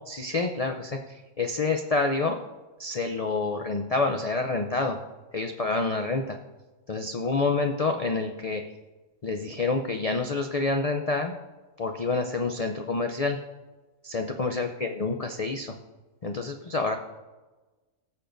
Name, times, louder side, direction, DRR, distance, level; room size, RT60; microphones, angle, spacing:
voice 1, 0.1-2.4 2.8-5.0 5.3-6.4 6.9-8.6 9.2-11.3 11.8-13.4 14.0-15.7 16.2-17.0, left 3 dB, 75° left, 4 dB, 0.3 m, -28 dB
19.0 x 6.8 x 2.6 m, 1.2 s
omnidirectional pair, 1.5 m